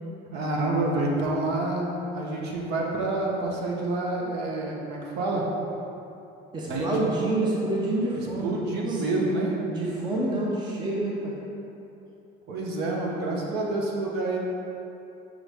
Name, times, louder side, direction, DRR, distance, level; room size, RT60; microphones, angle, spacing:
voice 1, 0.3-5.5 6.7-7.0 8.4-9.6 12.5-14.4, right 2 dB, 60° right, -2 dB, 1.0 m, -28 dB
voice 2, 6.5-8.6 8.8-9.0 9.7-11.4, right 2 dB, 20° right, -4 dB, 0.7 m, -27 dB
5.9 x 4.9 x 3.4 m, 2.9 s
cardioid pair, 150°, 20 cm